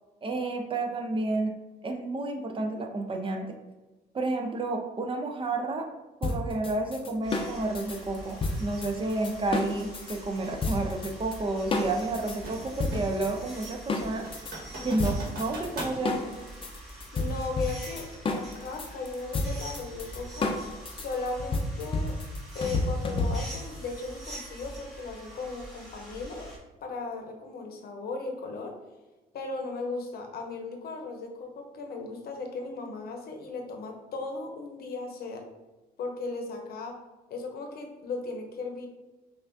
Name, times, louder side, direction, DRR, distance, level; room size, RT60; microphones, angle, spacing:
voice 1, 0.2-1.5 1.8-3.5 4.1-5.9 6.2-14.2 14.8-16.4, right 2 dB, 30° right, 3 dB, 0.5 m, -31 dB
sound 1, 6.2-10.2 10.6-11.4 11.7-14.6 15.0-23.7, left 2 dB, 30° left, 0.5 m, -31 dB
sound 2, 7.2-26.6, right 1 dB, ahead, 1.3 m, -45 dB
sound 3, 10.4-10.6 12.0-13.3 13.7-13.8 14.2-16.0, right 1 dB, 60° right, 1.5 m, -40 dB
voice 2, 17.1-20.6 20.9-22.2 22.5-26.5 26.8-28.7 29.3-35.4 36.0-37.0 37.3-38.9, left 3 dB, 65° left, 3 dB, 0.8 m, -37 dB
5.5 x 2.4 x 2.6 m, 1.1 s
cardioid pair, 110°, 17 cm